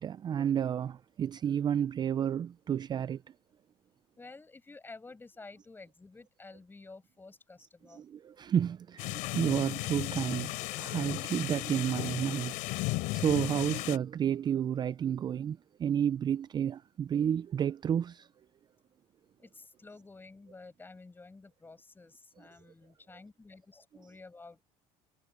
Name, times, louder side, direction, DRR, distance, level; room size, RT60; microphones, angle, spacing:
voice 1, 0.0-3.2 7.9-18.3, right 9 dB, 30° right, 0.4 m, -31 dB
voice 2, 4.2-8.0 19.4-24.6, left 3 dB, 15° left, 7.1 m, -51 dB
sound 1, 9.0-14.0, left 22 dB, 80° left, 3.8 m, -35 dB
cardioid pair, 120°, 14 cm